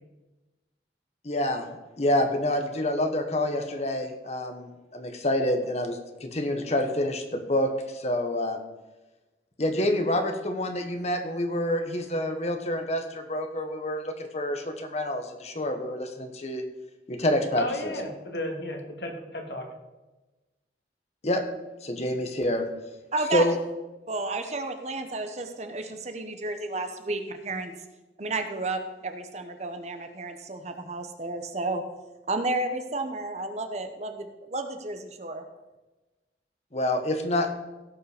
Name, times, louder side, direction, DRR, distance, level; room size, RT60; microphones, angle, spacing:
voice 1, 1.2-1.7 2.0-8.6 9.6-16.6 17.1-17.9 21.2-21.5 21.8-22.7 23.3-23.5 36.7-37.6, left 1 dB, 40° left, 6 dB, 1.2 m, -27 dB
voice 2, 17.6-19.7, left 1 dB, 70° left, 3 dB, 1.8 m, -33 dB
voice 3, 23.1-23.5 24.1-27.7 28.2-31.8 32.3-35.4, right 2 dB, 40° right, 7 dB, 1.0 m, -32 dB
16.5 x 5.5 x 5.0 m, 1.1 s
head